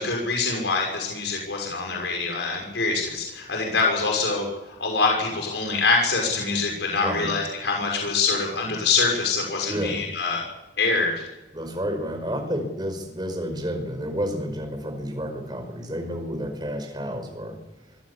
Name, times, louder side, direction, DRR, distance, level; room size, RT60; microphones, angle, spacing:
voice 1, 0.0-10.4 10.8-11.3, left 4 dB, 80° left, 0 dB, 6.2 m, -25 dB
voice 2, 7.0-7.3 9.7-10.0 11.5-17.6, equal, 25° right, 5 dB, 5.4 m, -30 dB
24.5 x 16.0 x 8.5 m, 1.0 s
head